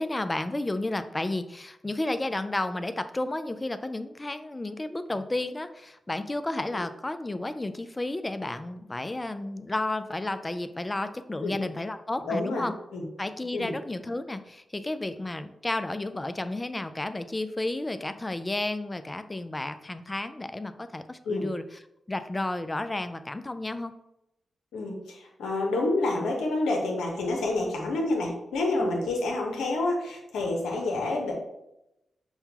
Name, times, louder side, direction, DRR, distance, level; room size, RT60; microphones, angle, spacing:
voice 1, 0.0-12.7 13.2-21.8 22.1-24.0 28.7-29.0, left 2 dB, 25° left, 10 dB, 0.4 m, -32 dB
voice 2, 12.2-12.7 12.9-13.0 13.5-13.7 21.3-21.5 24.7-31.3, left 2 dB, 90° left, 0 dB, 0.8 m, -28 dB
5.5 x 2.2 x 2.8 m, 0.87 s
supercardioid pair, 45°, 0 cm